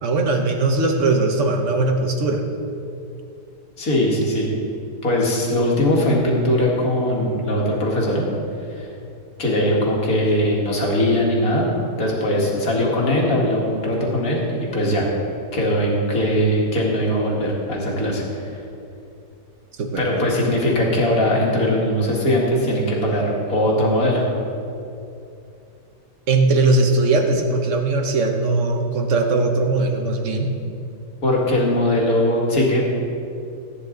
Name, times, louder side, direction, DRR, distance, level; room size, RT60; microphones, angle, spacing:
voice 1, 0.0-2.4 19.8-20.3 26.3-30.5, right 3 dB, 50° right, 4 dB, 1.2 m, -20 dB
voice 2, 3.8-4.5 5.0-8.2 8.7-8.9 9.4-11.7 12.0-15.1 15.5-18.5 20.0-24.3 31.2-32.8, left 1 dB, 60° left, -3 dB, 2.5 m, -20 dB
15.0 x 9.7 x 3.9 m, 2.6 s
omnidirectional pair, 1.8 m